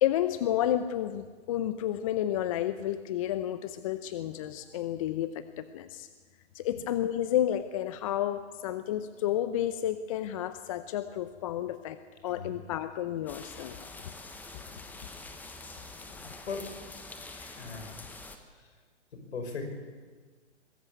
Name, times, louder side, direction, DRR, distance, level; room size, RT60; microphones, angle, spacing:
voice 1, 0.0-6.1 6.5-13.9, left 11 dB, 30° left, 12 dB, 0.6 m, -31 dB
sound 1, 13.3-18.4, left 3 dB, 5° left, 1.0 m, -46 dB
voice 2, 17.3-18.0 18.5-18.7 19.3-19.7, left 4 dB, 65° left, 5 dB, 5.7 m, -38 dB
22.5 x 14.0 x 8.4 m, 1.5 s
hypercardioid pair, 140°, 36 cm